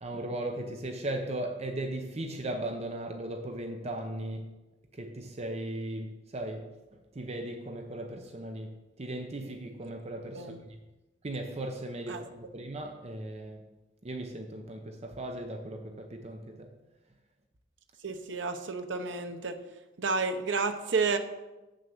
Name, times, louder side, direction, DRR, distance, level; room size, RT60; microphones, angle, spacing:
voice 1, 0.0-4.5 4.9-10.8 11.2-13.6 14.0-16.7, right 1 dB, 35° right, 0.8 m, -37 dB
voice 2, 18.0-19.6 20.0-21.2, right 4 dB, 75° right, 0.9 m, -30 dB
7.8 x 6.3 x 7.1 m
head